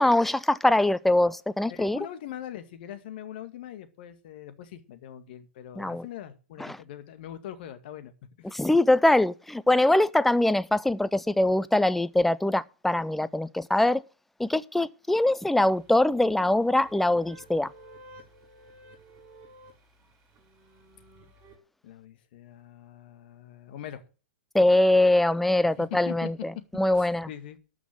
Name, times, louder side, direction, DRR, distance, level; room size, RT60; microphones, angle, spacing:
voice 1, 0.0-2.0 5.8-6.1 6.6-6.8 8.4-14.0 14.4-17.7 24.5-27.3, left 1 dB, 5° left, 0.5 m, -23 dB
voice 2, 1.7-8.1 8.4-8.6 21.8-24.0 25.8-26.3 26.9-27.6, left 11 dB, 55° left, 1.9 m, -42 dB
sound 1, 15.6-21.6, right 1 dB, 30° right, 5.5 m, -53 dB
13.0 x 6.1 x 7.4 m
figure-of-eight pair, 110°, 6 cm